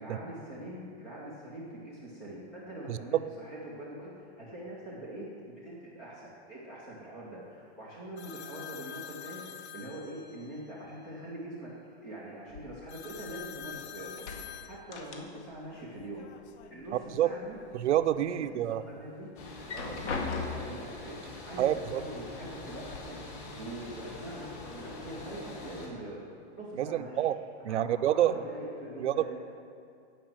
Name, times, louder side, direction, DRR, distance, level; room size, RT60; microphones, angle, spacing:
voice 1, 0.0-11.7 12.0-14.2 14.7-16.3 16.7-17.6 18.2-19.3 19.7-26.2 26.5-27.3 27.7-29.4, right 1 dB, 5° left, -6 dB, 0.3 m, -43 dB
sound 1, 8.2-10.6 12.9-17.1 17.5-18.6 19.5-20.4, left 9 dB, 70° left, 0.9 m, -47 dB
sound 2, 12.5-13.8 14.1-15.7 15.9-16.9 17.3-18.1 18.6-18.7 19.5-20.9 21.8-21.9 22.3-23.0, left 4 dB, 90° left, 2.0 m, -39 dB
voice 2, 17.7-18.8 21.6-22.0 26.8-27.4 27.6-28.3 29.0-29.1, right 12 dB, 85° right, 12 dB, 0.8 m, -27 dB
sound 3, 19.4-25.9, left 2 dB, 50° left, 3.3 m, -44 dB
14.5 x 5.7 x 8.8 m, 2.6 s
supercardioid pair, 170°, 34 cm